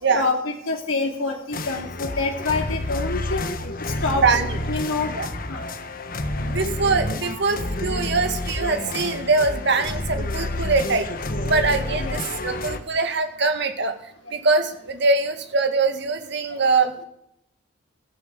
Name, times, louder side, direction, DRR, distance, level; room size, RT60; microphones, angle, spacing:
voice 1, 0.1-3.4 3.8-4.2 4.7-5.1 5.5-5.6 7.2-7.4 8.1-8.2 8.8-8.9 10.4-10.5 12.0-12.2 12.5-12.6, left 3 dB, 90° left, 2 dB, 2.5 m, -27 dB
sound 1, 1.5-12.8, left 1 dB, 45° left, 1.3 m, -29 dB
voice 2, 4.2-4.6 5.1-5.3 6.4-11.1 11.4-16.9, right 3 dB, 60° right, 7 dB, 2.1 m, -23 dB
15.0 x 11.0 x 8.1 m, 0.78 s
head